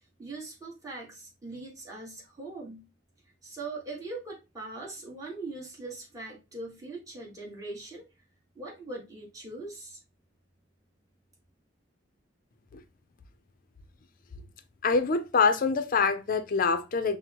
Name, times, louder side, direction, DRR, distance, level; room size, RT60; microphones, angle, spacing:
voice 1, 0.2-2.9 3.4-8.0 8.5-10.0, right 2 dB, 20° right, 1.4 m, -41 dB
voice 2, 14.8-17.2, left 5 dB, 50° left, 0.5 m, -25 dB
5.8 x 2.1 x 2.9 m
head